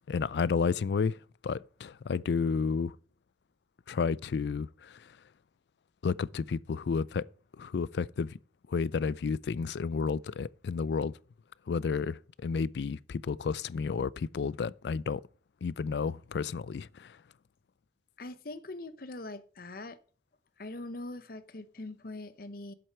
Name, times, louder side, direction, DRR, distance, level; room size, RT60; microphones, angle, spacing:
voice 1, 0.1-1.2 1.4-2.9 3.9-5.0 6.0-7.3 7.6-8.4 8.7-11.1 11.7-15.2 15.6-17.2, left 5 dB, 70° left, 0.4 m, -31 dB
voice 2, 18.2-20.0 20.6-22.7, left 2 dB, 55° left, 0.8 m, -42 dB
7.9 x 7.8 x 5.6 m
head